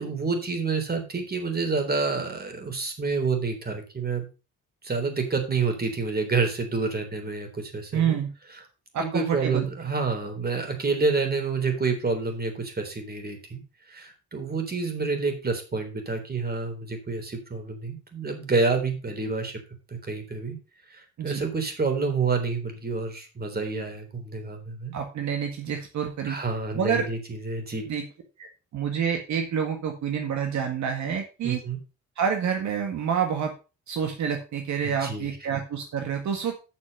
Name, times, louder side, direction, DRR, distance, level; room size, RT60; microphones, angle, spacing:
voice 1, 0.0-4.3 4.8-8.2 9.0-13.6 13.9-19.6 19.9-20.6 20.9-24.9 26.3-27.9 31.4-31.8 34.8-35.5, right 4 dB, 30° right, 6 dB, 3.7 m, -28 dB
voice 2, 7.9-8.3 8.9-9.7 21.2-21.4 24.9-26.4 26.7-27.1 27.9-28.0 28.4-28.5 28.7-31.6 32.2-33.5 33.9-36.5, right 7 dB, 70° right, 4 dB, 1.9 m, -28 dB
9.0 x 6.9 x 5.4 m, 0.31 s
cardioid pair, 90°, 30 cm